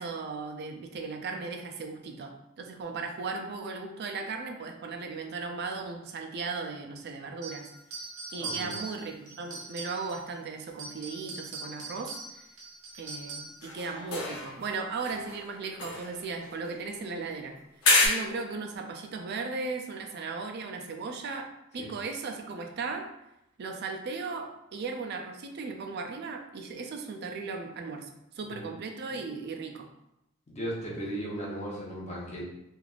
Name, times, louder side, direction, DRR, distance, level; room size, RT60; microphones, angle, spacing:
voice 1, 0.0-7.7 8.3-12.4 13.0-17.6 18.0-23.1 23.6-29.9, right 4 dB, 50° right, 4 dB, 0.4 m, -37 dB
sound 1, 7.4-10.3 10.7-13.7, right 3 dB, 80° right, 0.8 m, -41 dB
voice 2, 8.3-8.7 21.8-21.9 28.4-28.7 30.5-32.4, right 1 dB, 30° left, -5 dB, 0.8 m, -36 dB
sound 2, 13.6-14.8 15.0-17.1 17.8-18.1, left 2 dB, 80° left, 0.8 m, -29 dB
3.3 x 2.4 x 2.4 m, 0.84 s
head